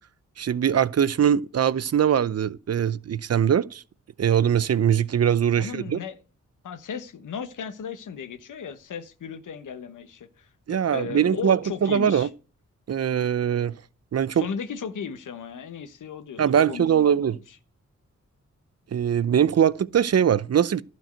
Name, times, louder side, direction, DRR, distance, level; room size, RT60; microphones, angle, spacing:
voice 1, 0.4-3.8 4.2-6.0 10.7-12.3 12.9-13.7 14.1-14.5 16.4-17.4 18.9-20.8, right 8 dB, 55° right, 0.6 m, -22 dB
voice 2, 5.6-6.2 6.6-12.3 14.3-17.3, left 7 dB, 80° left, 1.1 m, -36 dB
12.0 x 4.6 x 7.7 m
cardioid pair, 65°, 30 cm